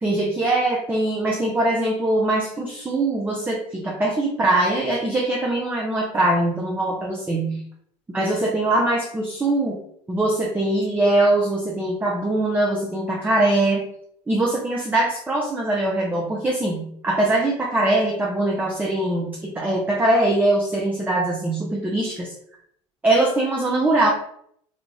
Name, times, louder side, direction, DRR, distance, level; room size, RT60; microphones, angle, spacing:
voice 1, 0.0-7.6 8.1-9.8 10.1-13.9 14.3-22.3 23.0-24.1, right 2 dB, 10° right, -2 dB, 0.6 m, -22 dB
2.5 x 2.3 x 3.1 m, 0.65 s
hypercardioid pair, 80°, 15 cm